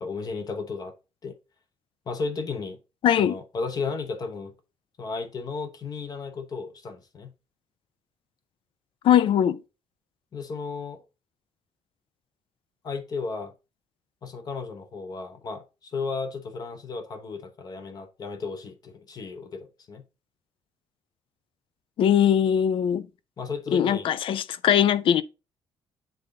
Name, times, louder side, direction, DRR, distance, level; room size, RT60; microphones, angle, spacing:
voice 1, 0.0-0.9 1.2-1.4 2.1-2.8 3.2-4.5 5.0-7.3 10.3-11.0 12.8-13.5 14.2-20.0 23.4-24.1, left 4 dB, 35° left, 0.9 m, -34 dB
voice 2, 3.0-3.4 9.0-9.6 22.0-23.1 23.7-25.2, left 9 dB, 55° left, 0.5 m, -21 dB
7.8 x 3.9 x 3.7 m
cardioid pair, 165°, 11 cm